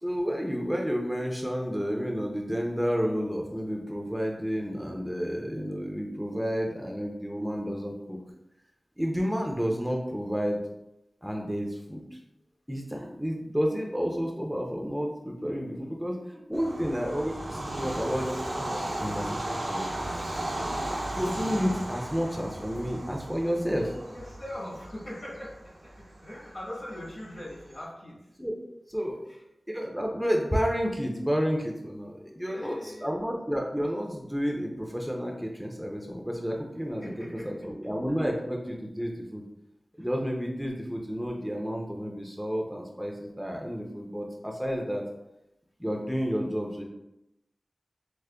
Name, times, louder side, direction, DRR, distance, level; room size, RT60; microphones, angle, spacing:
voice 1, 0.0-8.2 9.0-10.6 11.2-12.0 12.7-16.2 16.5-20.1 21.1-23.9 28.4-28.6 28.9-29.2 29.7-37.0 37.4-39.4 40.0-45.0 45.8-46.8, equal, 5° right, 0 dB, 0.5 m, -31 dB
voice 2, 15.5-16.7 24.1-28.3 29.1-29.4 32.4-33.1 37.0-37.6 40.0-40.1, left 1 dB, 65° left, -6 dB, 1.4 m, -42 dB
Bird vocalization bird call bird song / Train, 16.5-27.7, right 1 dB, 80° right, 0.8 m, -35 dB
4.8 x 2.1 x 2.2 m, 0.87 s
wide cardioid pair, 55°, 0 cm